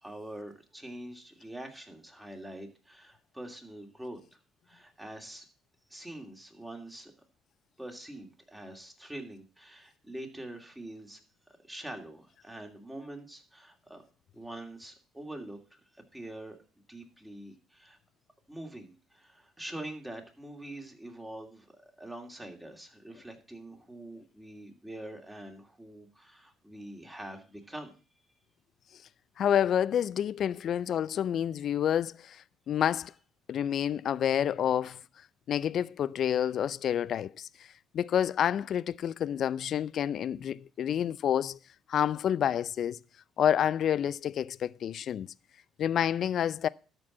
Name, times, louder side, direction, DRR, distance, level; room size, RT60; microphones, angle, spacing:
voice 1, 0.0-4.4 4.7-5.5 5.9-7.1 7.8-11.2 11.5-14.0 14.3-16.6 16.9-18.0 18.5-27.9, right 1 dB, 10° right, 2.8 m, -44 dB
voice 2, 29.4-33.1 33.5-35.0 35.5-37.5 37.9-41.6 41.9-43.0 43.4-45.3 45.8-46.7, left 9 dB, 60° left, 0.4 m, -28 dB
12.5 x 4.7 x 7.2 m
supercardioid pair, 75°, 0 cm